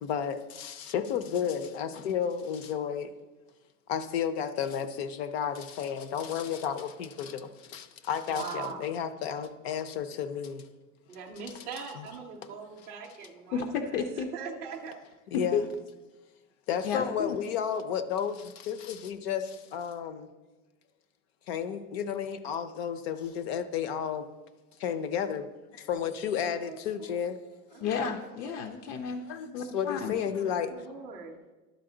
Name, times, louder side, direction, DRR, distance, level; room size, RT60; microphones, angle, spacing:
voice 1, 0.0-3.1 3.9-10.6 11.9-12.1 15.3-15.6 16.7-20.3 21.5-24.3 24.8-27.8 29.3-30.7, left 8 dB, 45° left, 0.5 m, -32 dB
voice 2, 8.3-8.9 11.1-14.0 14.3-15.0 25.9-26.0 26.4-27.2 27.7-28.2 30.7-31.4, right 5 dB, 15° right, 0.4 m, -42 dB
voice 3, 13.5-14.3 15.3-15.6 16.8-17.4 27.8-29.3 29.5-30.1, left 6 dB, 75° left, 0.8 m, -31 dB
11.5 x 4.2 x 3.8 m
supercardioid pair, 160°, 44 cm